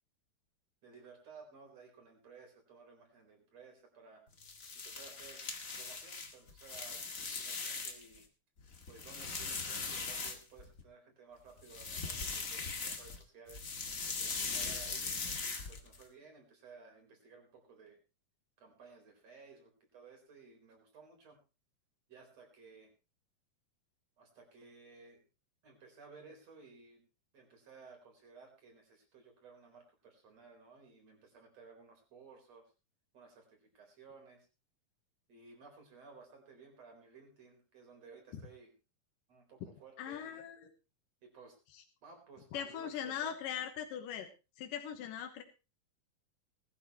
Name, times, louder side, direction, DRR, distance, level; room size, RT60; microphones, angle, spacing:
voice 1, 0.8-4.2 4.8-5.4 5.8-7.0 7.4-8.3 8.9-13.6 14.2-18.0 18.6-21.4 22.1-22.9 24.2-25.2 25.6-27.0 27.3-32.7 33.1-34.5 35.3-38.7 39.3-40.4 41.2-41.6 42.0-43.4, right 4 dB, 50° right, 3 dB, 5.4 m, -57 dB
sound 1, 4.3-8.2 8.6-10.8 11.6-13.2 13.5-16.0, left 4 dB, 35° left, 1.4 m, -40 dB
voice 2, 40.0-40.7 42.5-44.3 44.6-45.4, left 9 dB, 75° left, 5 dB, 2.8 m, -40 dB
20.0 x 12.5 x 3.1 m, 0.30 s
omnidirectional pair, 4.0 m